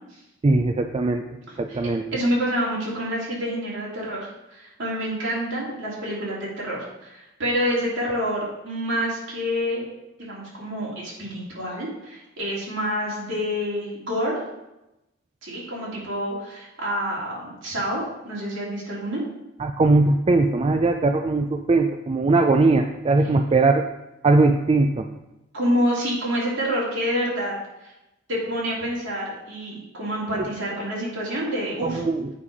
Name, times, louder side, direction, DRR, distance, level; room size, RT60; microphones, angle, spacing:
voice 1, 0.4-1.2 1.6-2.1 19.6-23.9 24.2-25.1 30.3-30.5 31.8-32.3, right 3 dB, 30° right, 6 dB, 0.3 m, -20 dB
voice 2, 1.5-1.8 2.1-9.9 10.2-14.4 15.4-19.2 25.5-27.5 28.3-32.0, equal, 60° right, -5 dB, 2.9 m, -27 dB
8.4 x 5.4 x 4.8 m, 0.94 s
head